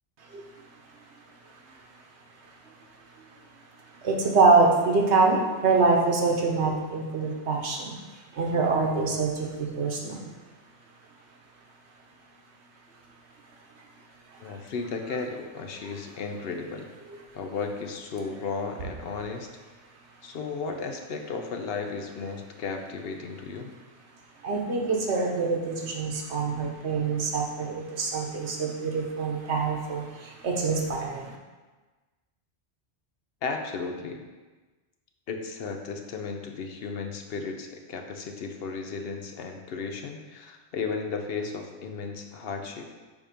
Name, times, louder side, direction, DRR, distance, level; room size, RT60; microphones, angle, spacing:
voice 1, 4.0-10.2 14.3-14.5 24.4-31.4, right 4 dB, 90° right, 0 dB, 1.2 m, -25 dB
voice 2, 14.4-16.9 17.3-19.5 20.2-23.7 33.4-34.2 35.3-42.8, left 4 dB, 65° left, 4 dB, 0.9 m, -34 dB
7.1 x 2.9 x 5.1 m, 1.3 s
omnidirectional pair, 1.1 m